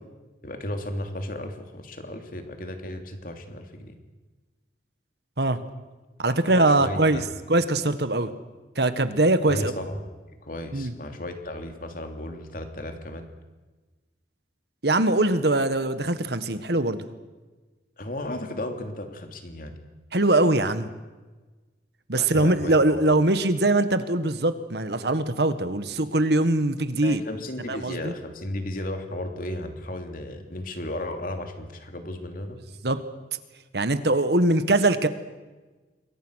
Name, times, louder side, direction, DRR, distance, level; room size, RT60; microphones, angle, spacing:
voice 1, 0.4-3.9 6.3-7.2 9.5-10.0 10.4-13.3 18.0-19.7 22.1-23.0 27.0-32.6, left 1 dB, 50° left, 5 dB, 2.9 m, -34 dB
voice 2, 6.2-7.2 7.5-8.3 8.7-9.7 10.7-10.9 14.8-17.0 20.1-20.9 22.1-27.2 27.7-28.1 32.8-33.0 33.7-35.1, right 2 dB, 65° right, 11 dB, 1.5 m, -22 dB
27.0 x 22.5 x 6.4 m, 1.2 s
head